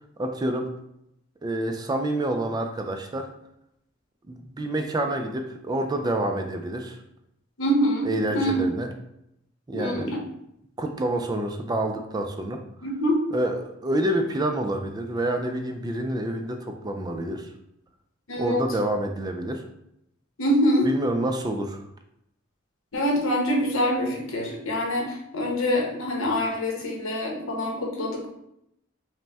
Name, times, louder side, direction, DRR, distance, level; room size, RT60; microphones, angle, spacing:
voice 1, 0.2-0.7 1.4-3.3 4.3-7.0 8.0-8.9 9.7-10.1 10.8-12.6 13.3-17.5 18.4-19.6 20.8-21.8, right 1 dB, 20° right, 5 dB, 0.3 m, -28 dB
voice 2, 7.6-8.1 8.3-8.6 9.7-10.2 12.8-13.2 18.3-18.6 20.4-20.9 22.9-28.3, equal, 75° left, -1 dB, 1.0 m, -25 dB
5.0 x 2.1 x 3.4 m, 0.79 s
head